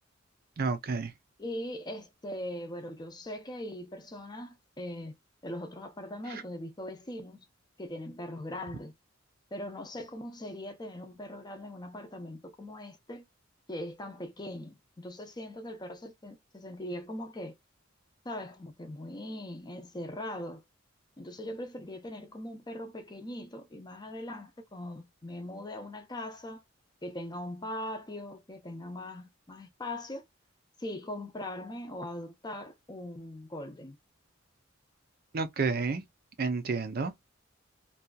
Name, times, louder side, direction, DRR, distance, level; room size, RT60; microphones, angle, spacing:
voice 1, 0.6-1.1 35.3-36.0 36.4-37.1, right 4 dB, 50° right, 0.5 m, -30 dB
voice 2, 1.4-5.1 5.4-7.4 7.8-8.9 9.5-13.2 13.7-17.5 18.2-20.6 21.2-26.6 27.0-30.3 30.8-34.0, left 1 dB, 20° left, 0.6 m, -40 dB
2.7 x 2.3 x 2.3 m
head